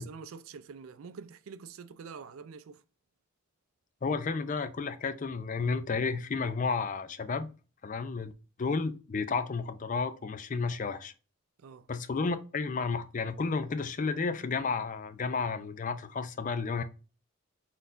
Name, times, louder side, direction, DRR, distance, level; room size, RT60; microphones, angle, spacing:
voice 1, 0.0-2.8 11.6-11.9, right 5 dB, 80° right, 0.4 m, -46 dB
voice 2, 4.0-7.5 7.8-8.3 8.6-11.1 11.9-16.8, left 4 dB, 40° left, 0.4 m, -32 dB
3.9 x 3.9 x 2.5 m
head